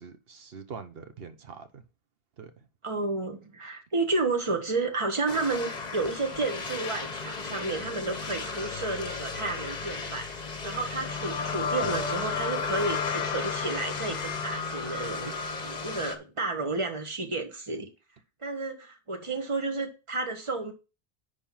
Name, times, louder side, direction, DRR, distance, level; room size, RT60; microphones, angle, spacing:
voice 1, 0.0-1.8 2.4-2.7 11.8-12.0, right 6 dB, 70° right, 1.2 m, -42 dB
voice 2, 2.8-15.3 15.6-17.9 18.4-20.7, right 3 dB, 30° right, 1.3 m, -31 dB
sound 1, 5.3-16.2, left 5 dB, 45° left, 1.1 m, -33 dB
10.5 x 3.5 x 5.7 m
omnidirectional pair, 1.0 m